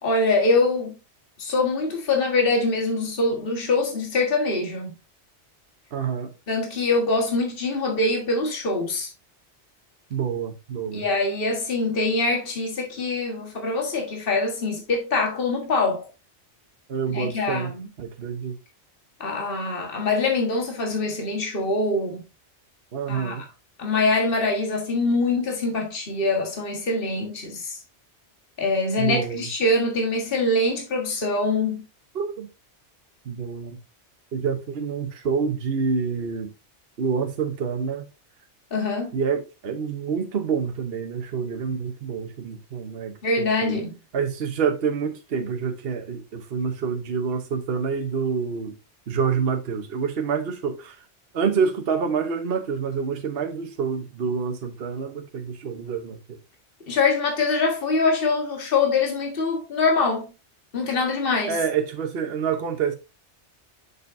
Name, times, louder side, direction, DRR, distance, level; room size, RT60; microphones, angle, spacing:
voice 1, 0.0-0.9 1.4-5.0 6.5-9.1 10.9-16.1 17.1-17.9 19.2-22.2 23.1-23.5 23.8-27.8 28.6-31.9 38.7-39.2 43.2-44.0 56.9-60.3 60.7-61.6, left 3 dB, 50° left, 1.8 m, -24 dB
voice 2, 5.9-6.3 10.1-11.1 16.9-17.7 18.0-18.6 22.9-23.4 29.0-29.5 32.1-32.5 33.2-33.8 34.3-36.5 37.0-38.1 39.1-43.8 44.1-48.8 49.1-51.1 51.3-56.4 61.5-62.9, right 6 dB, 60° right, 1.1 m, -27 dB
6.8 x 6.6 x 2.6 m
omnidirectional pair, 1.2 m